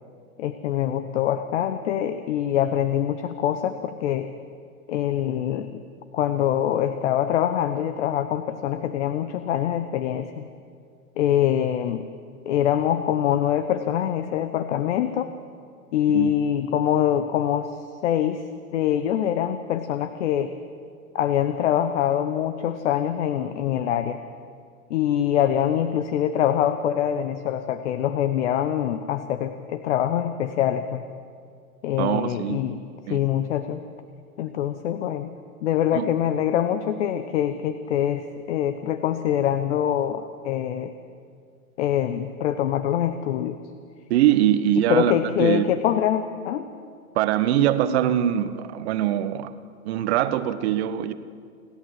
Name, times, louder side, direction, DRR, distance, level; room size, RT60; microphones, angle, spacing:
voice 1, 0.4-4.3 4.9-5.8 6.1-10.5 11.2-12.1 12.5-15.3 15.9-18.4 18.7-20.5 21.1-24.2 24.9-31.0 31.8-32.8 33.1-33.9 34.4-35.3 35.6-40.9 41.8-43.6 44.9-46.7, left 10 dB, 50° left, 10 dB, 1.0 m, -24 dB
voice 2, 32.0-32.6 33.1-33.2 35.9-36.1 44.1-45.7 47.1-49.5 49.8-51.1, right 11 dB, 45° right, 12 dB, 1.2 m, -22 dB
29.5 x 11.5 x 7.7 m, 2.2 s
figure-of-eight pair, 110°, 46 cm